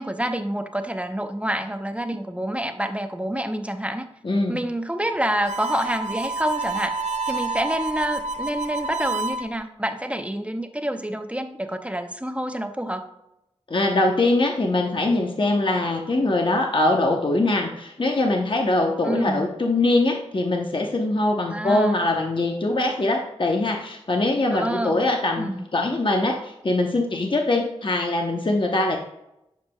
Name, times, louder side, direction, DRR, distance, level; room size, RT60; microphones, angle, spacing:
voice 1, 0.0-4.1 4.5-7.0 7.3-13.1 19.0-19.5 21.5-22.1 24.5-25.1 25.4-25.7, right 1 dB, 10° right, 7 dB, 0.7 m, -27 dB
voice 2, 4.2-4.6 13.7-29.0, left 2 dB, 45° left, 2 dB, 0.8 m, -22 dB
Harmonica, 5.4-9.4, right 3 dB, 85° right, 0.5 m, -29 dB
10.0 x 5.2 x 2.2 m, 0.85 s
cardioid pair, 45°, 11 cm